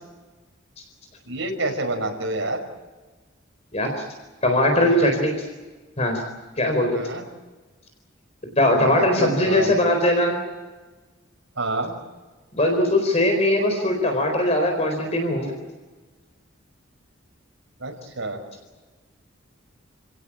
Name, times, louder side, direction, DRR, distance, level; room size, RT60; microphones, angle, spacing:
voice 1, 1.3-2.6 4.8-5.1 6.9-7.2 8.5-9.8 11.6-11.9 17.8-18.4, right 2 dB, 75° right, 2 dB, 5.6 m, -28 dB
voice 2, 4.4-5.3 6.0-6.2 6.6-7.0 8.6-10.4 12.5-15.5, left 1 dB, 35° left, 4 dB, 4.4 m, -20 dB
29.5 x 17.5 x 8.8 m, 1.3 s
head